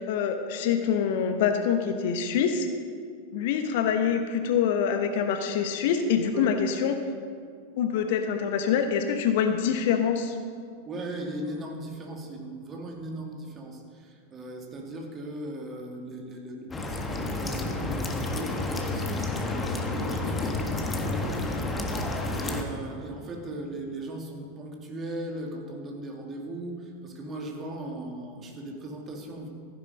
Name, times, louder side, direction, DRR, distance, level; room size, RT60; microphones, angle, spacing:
voice 1, 0.0-2.7 3.3-7.0 7.8-10.4, left 7 dB, 50° left, 7 dB, 1.1 m, -25 dB
voice 2, 10.9-29.5, right 1 dB, 25° right, 1 dB, 2.2 m, -38 dB
sound 1, 16.7-22.6, left 2 dB, 15° left, 1.5 m, -30 dB
14.5 x 9.9 x 5.3 m, 2.2 s
figure-of-eight pair, 90°, 0 cm